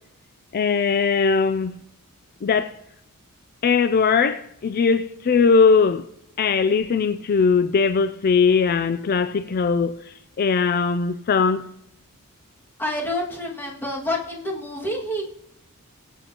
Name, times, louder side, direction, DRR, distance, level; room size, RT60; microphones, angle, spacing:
voice 1, 0.5-1.7 2.4-2.8 3.6-6.1 6.4-11.7, left 5 dB, 40° left, 0.3 m, -20 dB
voice 2, 12.8-15.2, left 1 dB, 10° left, 2.0 m, -28 dB
21.0 x 8.3 x 2.9 m
head